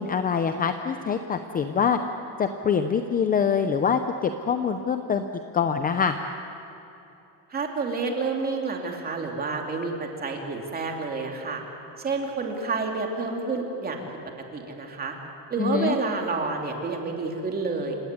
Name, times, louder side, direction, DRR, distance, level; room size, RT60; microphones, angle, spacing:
voice 1, 0.0-2.0 2.4-5.2 5.5-6.2 15.6-16.0, left 6 dB, 20° left, 7 dB, 0.6 m, -24 dB
voice 2, 7.5-11.6 12.0-14.0 14.5-15.2 15.5-18.0, right 3 dB, 20° right, 2 dB, 2.7 m, -29 dB
29.0 x 17.5 x 9.7 m, 2.8 s
cardioid pair, 175°, 42 cm